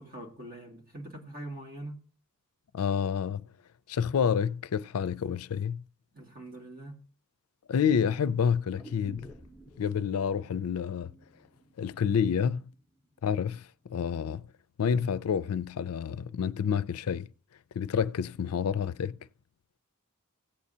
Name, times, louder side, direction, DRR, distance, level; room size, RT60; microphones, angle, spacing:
voice 1, 0.0-2.0 6.1-7.0, right 1 dB, 40° right, 2.2 m, -43 dB
voice 2, 2.7-3.4 3.9-5.8 7.7-9.3 9.8-11.1 11.8-12.6 13.2-14.4 14.8-17.3 17.8-19.1, left 7 dB, 85° left, 0.4 m, -28 dB
sound 1, 8.8-12.8 13.1-13.2, right 2 dB, 5° right, 0.8 m, -52 dB
16.5 x 8.3 x 2.7 m
head